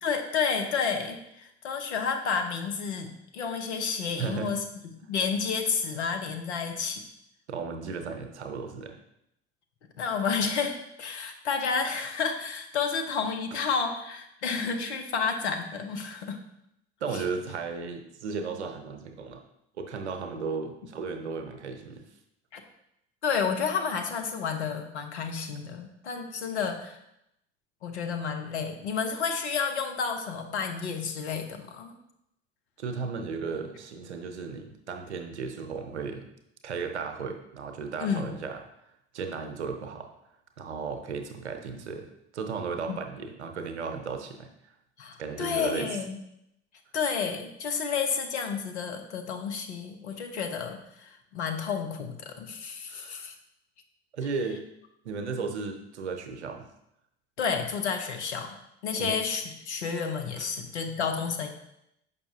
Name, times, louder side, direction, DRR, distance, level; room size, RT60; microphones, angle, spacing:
voice 1, 0.0-4.6 5.1-7.0 10.0-16.4 17.1-17.2 22.5-22.6 23.2-27.0 27.8-32.0 38.0-38.3 42.9-43.0 45.0-46.2 46.9-53.3 57.4-58.6 58.8-61.5, left 6 dB, 85° left, 5 dB, 0.8 m, -30 dB
voice 2, 4.2-4.5 7.5-9.0 13.5-13.6 17.0-19.4 19.8-22.0 32.8-36.2 36.6-38.6 39.1-40.1 40.6-44.5 45.2-46.0 52.9-53.3 54.1-54.6 55.0-56.6 58.9-59.2 60.4-60.5, right 5 dB, 90° right, 6 dB, 0.7 m, -35 dB
6.8 x 5.5 x 2.8 m, 0.81 s
hypercardioid pair, 60°, 33 cm